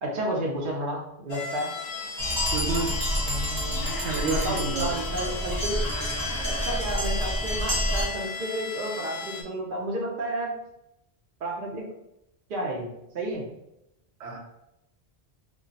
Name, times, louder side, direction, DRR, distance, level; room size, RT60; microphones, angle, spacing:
voice 1, 0.0-1.7 3.3-5.8 6.6-10.6 11.4-11.9 12.5-13.5, right 1 dB, 55° right, -1 dB, 0.8 m, -31 dB
sound 1, 1.3-9.4, left 5 dB, 70° left, 0.7 m, -37 dB
sound 2, 2.2-8.1, equal, 25° right, 0.5 m, -28 dB
voice 2, 2.5-3.0 3.3-3.4 3.8-5.0 14.2-14.4, right 4 dB, 90° right, 0 dB, 0.9 m, -31 dB
2.2 x 2.2 x 3.8 m, 0.85 s
omnidirectional pair, 1.1 m